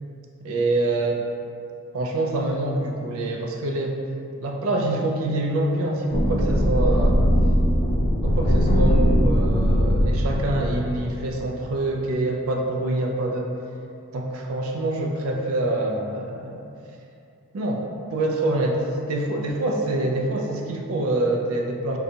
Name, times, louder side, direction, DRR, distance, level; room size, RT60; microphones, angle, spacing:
voice 1, 0.4-1.2 1.9-4.0 4.4-7.2 8.2-13.5 14.1-16.7 17.5-17.9 18.1-22.0, right 2 dB, 65° right, 1 dB, 0.3 m, -25 dB
sound 1, 6.1-11.5, equal, 30° left, 0.3 m, -20 dB
3.7 x 2.3 x 2.7 m, 2.5 s
head